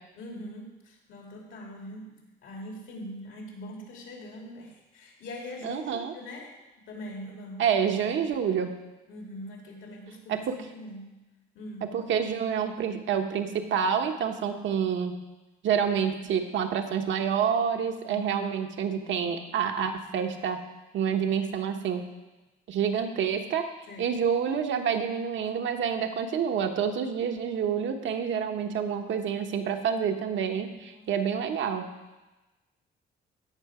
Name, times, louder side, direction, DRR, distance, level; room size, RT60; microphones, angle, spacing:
voice 1, 0.1-6.6 6.9-7.6 9.1-11.1 11.5-11.9 18.1-18.5 23.9-24.2 30.9-31.1, left 1 dB, 80° left, 0 dB, 2.6 m, -42 dB
voice 2, 5.6-6.1 7.6-8.7 10.3-10.5 11.9-15.1 15.6-20.6 20.9-22.0 22.7-23.7 24.0-31.9, right 7 dB, 75° right, 5 dB, 1.1 m, -28 dB
16.0 x 5.6 x 4.9 m, 1.1 s
cardioid pair, 90°, 20 cm